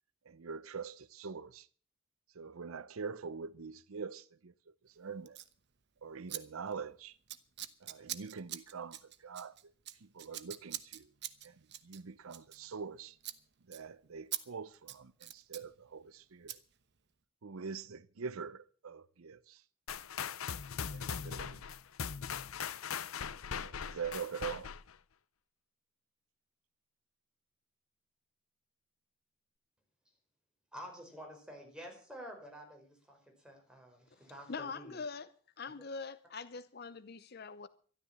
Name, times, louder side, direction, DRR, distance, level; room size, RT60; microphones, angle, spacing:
voice 1, 0.2-1.7 2.3-5.4 6.0-7.2 7.8-11.1 11.4-13.2 13.6-16.6 17.4-19.6 20.9-21.6 23.6-24.7, right 5 dB, 90° right, 0.7 m, -44 dB
Scissors, 5.3-5.5 6.3-6.4 6.7-6.9 7.3-12.9 13.2-13.4 13.7-13.8 14.3-14.4 14.7-15.7 16.5-16.6, right 13 dB, 55° right, 1.0 m, -44 dB
sound 1, 19.9-25.0, left 7 dB, 85° left, 0.7 m, -40 dB
voice 2, 30.7-35.0, equal, 5° right, 5.0 m, -50 dB
voice 3, 34.5-35.3 35.6-37.7, left 4 dB, 50° left, 0.7 m, -43 dB
13.0 x 12.5 x 7.2 m
head